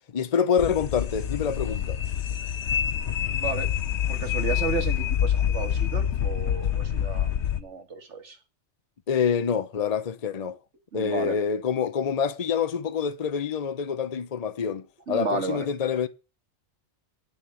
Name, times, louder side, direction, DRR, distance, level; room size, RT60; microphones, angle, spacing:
voice 1, 0.1-2.0 9.1-10.6 10.9-16.1, left 7 dB, 40° left, 0.8 m, -26 dB
sound 1, 0.6-7.6, left 9 dB, 70° left, 1.1 m, -27 dB
voice 2, 3.3-3.7 4.1-7.3 7.6-8.4 10.9-11.4 15.1-15.7, right 4 dB, 80° right, 2.0 m, -32 dB
8.5 x 7.0 x 8.3 m
omnidirectional pair, 1.2 m